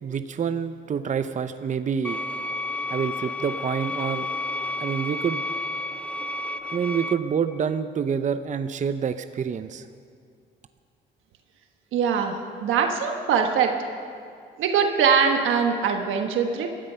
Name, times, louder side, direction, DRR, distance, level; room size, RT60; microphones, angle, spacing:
voice 1, 0.0-2.2 2.9-4.3 4.8-5.4 6.7-9.9, right 7 dB, 40° right, 10 dB, 0.6 m, -27 dB
sound 1, 2.0-7.1, left 2 dB, 5° left, 0.6 m, -31 dB
voice 2, 11.9-13.7 14.6-16.7, right 6 dB, 85° right, 4 dB, 1.3 m, -22 dB
19.0 x 12.5 x 5.6 m, 2.3 s
cardioid pair, 90°, 20 cm